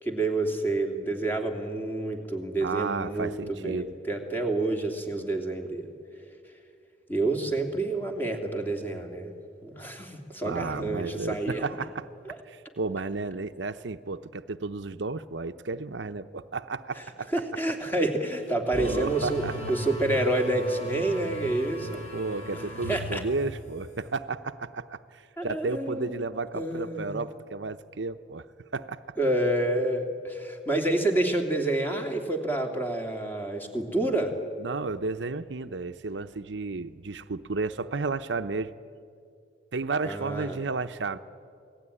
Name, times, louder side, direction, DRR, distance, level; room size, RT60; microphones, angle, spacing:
voice 1, 0.0-5.9 7.1-9.3 9.6-11.6 12.2-12.4 17.3-19.4 19.7-22.1 22.9-23.2 25.4-26.2 26.5-27.2 29.2-34.3 40.0-40.6, right 2 dB, 10° left, 3 dB, 2.8 m, -28 dB
voice 2, 2.6-3.9 10.4-12.1 12.4-17.3 18.7-19.6 21.9-28.5 28.7-29.2 34.6-38.7 39.7-41.2, right 3 dB, 70° right, 10 dB, 0.7 m, -33 dB
sound 1, 18.7-24.1, equal, 40° left, 6.8 m, -38 dB
28.0 x 18.5 x 9.9 m, 2.3 s
head